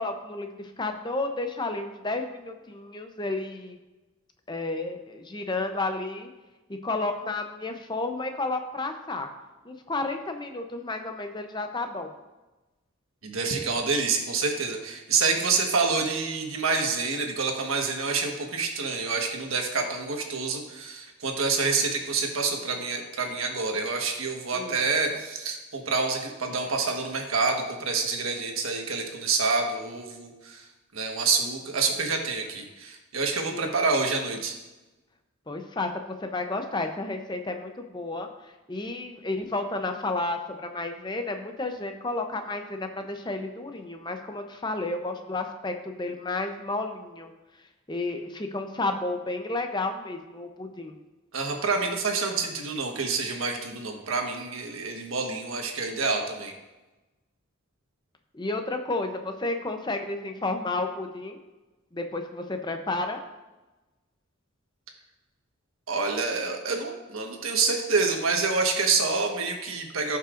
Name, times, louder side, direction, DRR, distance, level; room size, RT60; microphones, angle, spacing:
voice 1, 0.0-3.8 4.5-6.3 6.8-9.3 9.6-12.1 24.5-24.7 33.5-33.7 35.5-35.9 36.2-38.3 38.7-47.3 47.9-51.0 58.3-61.4 61.9-63.2, left 2 dB, 20° left, 5 dB, 0.6 m, -31 dB
voice 2, 13.2-30.7 30.9-34.6 51.3-56.5 65.9-70.2, right 4 dB, 85° right, 2 dB, 1.3 m, -27 dB
16.0 x 5.6 x 2.5 m, 1.1 s
head